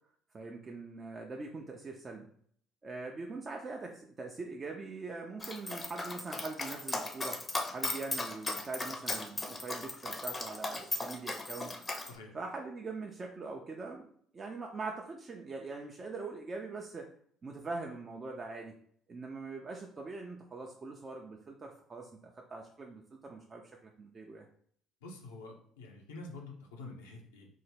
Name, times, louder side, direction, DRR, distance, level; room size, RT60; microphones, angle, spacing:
voice 1, 0.3-2.3 2.8-7.4 7.7-11.7 12.3-17.1 17.4-18.7 19.1-24.5, right 3 dB, 35° right, 1 dB, 0.4 m, -42 dB
Dog, 5.4-12.1, left 2 dB, 25° left, 0.5 m, -37 dB
voice 2, 25.0-27.5, left 2 dB, 80° left, 0 dB, 0.5 m, -47 dB
3.5 x 2.0 x 3.3 m, 0.62 s
hypercardioid pair, 55°, 0 cm